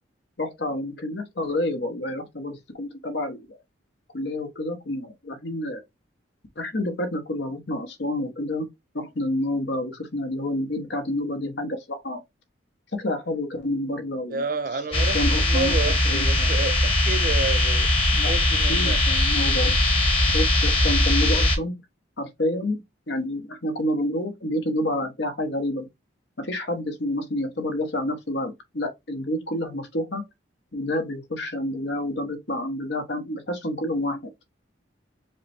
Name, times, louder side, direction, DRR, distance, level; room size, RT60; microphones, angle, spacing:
voice 1, 0.4-3.6 4.1-5.8 6.6-8.7 8.9-12.2 13.0-14.4 14.7-16.5 18.1-19.8 20.3-21.7 22.2-25.9 26.4-30.2 30.7-34.2, left 1 dB, 65° left, 1.1 m, -29 dB
voice 2, 14.3-15.2 15.5-17.9 18.3-19.0, right 3 dB, 45° right, 0.5 m, -30 dB
sound 1, 14.9-21.6, left 1 dB, 30° left, 1.3 m, -20 dB
4.8 x 2.2 x 4.3 m
head